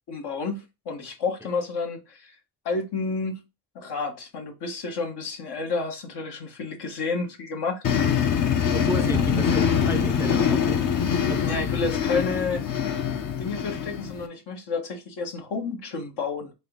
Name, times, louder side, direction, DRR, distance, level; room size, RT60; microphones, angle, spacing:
voice 1, 0.1-2.4 2.6-3.4 3.7-8.0 9.1-9.2 11.3-12.7 13.4-16.5, left 4 dB, 70° left, 1.4 m, -30 dB
sound 1, 7.8-14.3, left 7 dB, 45° left, 0.8 m, -24 dB
voice 2, 8.7-11.6, right 1 dB, 5° right, 0.4 m, -33 dB
4.0 x 2.7 x 3.6 m
cardioid pair, 75°, 42 cm